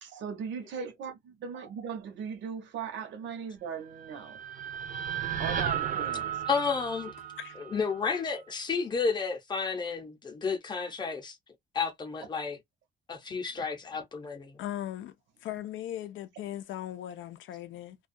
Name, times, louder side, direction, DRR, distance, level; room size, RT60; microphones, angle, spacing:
voice 1, 0.0-4.4 5.4-6.3 13.6-13.7, right 6 dB, 75° right, 0.8 m, -38 dB
sound 1, 3.8-8.0, right 8 dB, 45° right, 0.6 m, -34 dB
voice 2, 6.5-7.1 7.6-11.4 11.7-12.6 13.1-14.6, left 5 dB, 20° left, 0.6 m, -31 dB
voice 3, 14.6-15.1 15.4-18.0, left 12 dB, 80° left, 0.5 m, -38 dB
2.3 x 2.2 x 2.5 m
cardioid pair, 160°, 19 cm